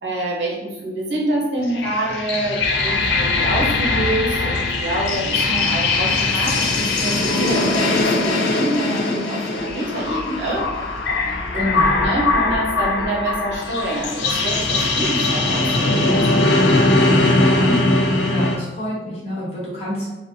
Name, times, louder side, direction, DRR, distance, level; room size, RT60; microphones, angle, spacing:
voice 1, 0.0-10.9 11.5-15.7 16.0-17.8, right 1 dB, 70° right, -3 dB, 0.7 m, -26 dB
sound 1, 1.6-18.6, left 2 dB, 60° left, 0.4 m, -20 dB
voice 2, 11.2-12.1 18.3-20.1, equal, 35° left, -7 dB, 0.9 m, -28 dB
2.5 x 2.0 x 2.6 m, 1.1 s
head